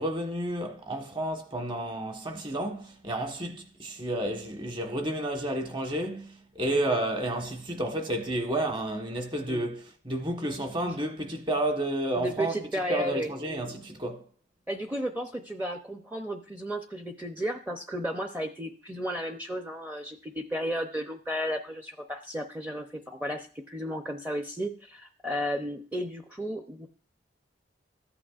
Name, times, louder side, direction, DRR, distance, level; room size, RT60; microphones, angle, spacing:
voice 1, 0.0-12.5 12.9-14.2, right 1 dB, 25° right, 1.3 m, -31 dB
voice 2, 12.2-13.3 14.7-26.9, equal, 10° right, 0.6 m, -33 dB
14.0 x 8.8 x 2.4 m
head